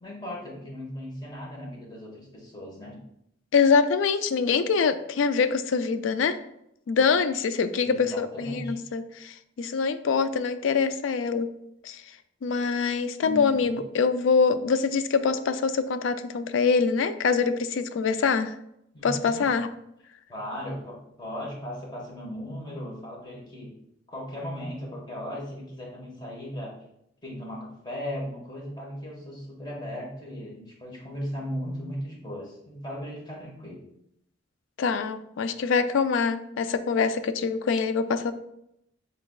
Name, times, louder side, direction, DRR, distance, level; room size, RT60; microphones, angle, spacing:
voice 1, 0.0-3.0 7.8-8.8 13.2-13.8 18.9-19.5 20.3-23.7 24.1-26.7 27.2-33.8, equal, 25° left, -2 dB, 1.4 m, -37 dB
voice 2, 3.5-6.4 6.9-11.5 11.8-12.0 12.4-18.6 19.0-19.7 34.8-38.3, left 5 dB, 75° left, 11 dB, 0.4 m, -24 dB
6.7 x 3.4 x 2.3 m, 0.79 s
head